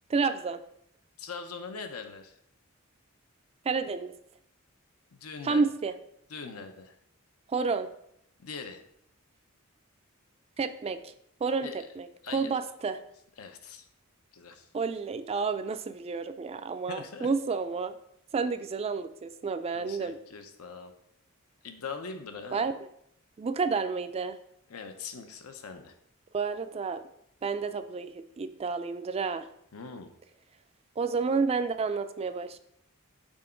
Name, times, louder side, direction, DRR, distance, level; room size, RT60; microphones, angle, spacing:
voice 1, 0.1-0.6 3.7-4.1 5.4-5.9 7.5-7.9 10.6-11.1 11.4-12.1 12.3-13.0 14.7-17.9 18.3-20.2 22.5-22.7 23.4-24.4 26.3-27.0 27.4-29.5 31.0-32.6, right 4 dB, 30° right, 10 dB, 0.3 m, -30 dB
voice 2, 1.2-2.4 5.1-5.6 6.3-7.0 8.4-8.8 11.6-11.9 12.2-12.5 13.4-13.9 14.3-14.7 16.9-17.3 19.7-20.9 21.6-22.7 24.7-25.9 29.7-30.1, left 5 dB, 85° left, 6 dB, 0.7 m, -41 dB
6.2 x 3.8 x 4.4 m, 0.73 s
head